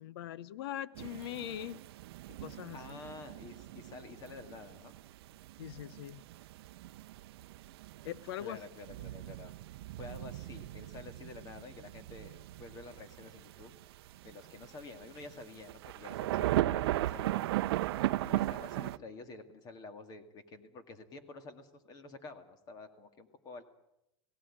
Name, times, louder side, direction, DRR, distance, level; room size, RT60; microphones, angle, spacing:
voice 1, 0.0-1.8 2.3-3.0 5.6-6.2 8.0-8.6, left 12 dB, 65° left, 0.8 m, -41 dB
sound 1, 0.9-19.0, right 15 dB, 70° right, 0.7 m, -37 dB
voice 2, 2.7-4.9 8.4-9.5 10.0-13.7 14.2-23.6, left 3 dB, 30° left, 2.1 m, -50 dB
18.0 x 17.5 x 8.7 m
supercardioid pair, 150°, 14 cm